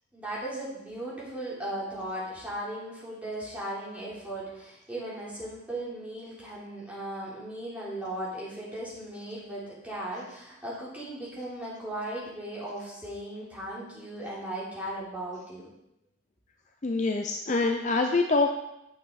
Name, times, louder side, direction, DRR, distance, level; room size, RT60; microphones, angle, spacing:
voice 1, 0.1-15.7, right 1 dB, 5° right, -8 dB, 3.5 m, -37 dB
voice 2, 16.8-18.5, left 3 dB, 35° left, 4 dB, 0.5 m, -25 dB
9.3 x 7.9 x 4.1 m, 0.85 s
head